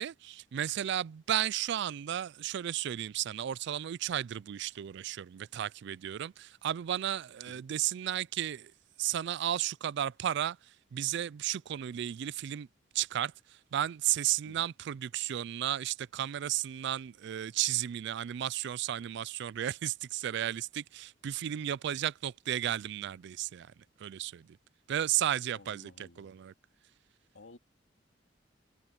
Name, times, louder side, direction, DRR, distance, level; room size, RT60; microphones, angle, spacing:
voice 1, 0.0-8.7 9.0-10.6 10.9-12.7 12.9-13.3 13.7-23.7 24.0-24.5 24.9-26.5, right 11 dB, 65° right, 0.3 m, -33 dB
voice 2, 25.5-26.4 27.3-27.6, left 2 dB, 90° left, 2.2 m, -55 dB
head